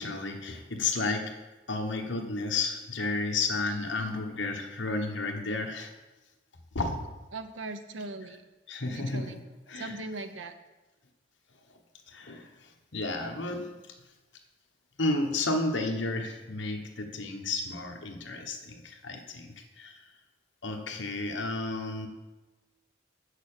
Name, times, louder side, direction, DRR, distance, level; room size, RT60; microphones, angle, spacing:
voice 1, 0.0-1.4 1.7-5.9 6.7-7.1 8.7-9.4 9.7-10.0 12.1-13.7 15.0-20.0 20.6-22.1, left 3 dB, 70° left, 4 dB, 1.2 m, -32 dB
voice 2, 7.3-8.4 8.9-9.4 9.8-10.6, right 2 dB, 80° right, 9 dB, 0.8 m, -39 dB
7.6 x 6.5 x 6.7 m, 1.1 s
head